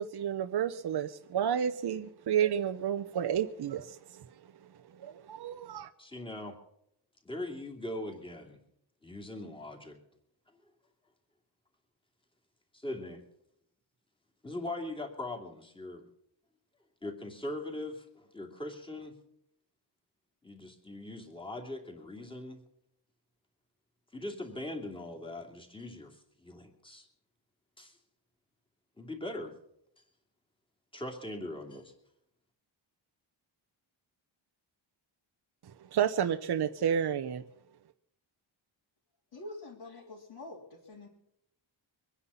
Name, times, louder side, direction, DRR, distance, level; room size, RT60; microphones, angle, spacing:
voice 1, 0.0-4.2 5.0-5.9 35.9-37.4, right 9 dB, 55° right, 7 dB, 0.8 m, -31 dB
voice 2, 6.0-6.6 7.2-8.6 9.0-10.0 12.7-13.2 14.4-16.0 17.0-19.1 20.4-22.6 24.1-27.1 27.8-28.0 29.0-29.5 30.9-31.9, left 1 dB, 10° left, 1 dB, 2.7 m, -41 dB
voice 3, 39.3-41.1, left 2 dB, 60° left, -4 dB, 3.4 m, -46 dB
23.5 x 9.9 x 5.6 m, 0.76 s
wide cardioid pair, 160°, 47 cm